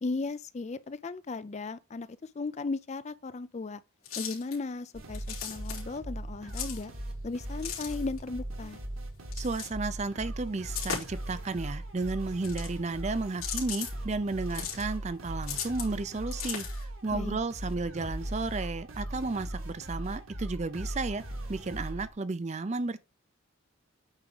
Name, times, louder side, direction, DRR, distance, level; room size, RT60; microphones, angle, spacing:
voice 1, 0.0-3.8 4.2-6.9 7.2-8.8 17.1-17.4, left 3 dB, 30° left, 0.4 m, -36 dB
sound 1, 4.0-4.6 5.1-5.8 6.5-6.8 7.5-8.2 9.3-9.7 10.7-11.3 12.3-12.9 13.4-13.9 14.5-14.8 15.4-15.9 16.3-16.8, left 8 dB, 85° left, 3.2 m, -37 dB
sound 2, 4.9-22.1, right 1 dB, 80° right, 1.8 m, -39 dB
voice 2, 9.4-21.2 21.5-23.0, right 3 dB, 35° right, 0.5 m, -33 dB
8.9 x 3.6 x 4.9 m
head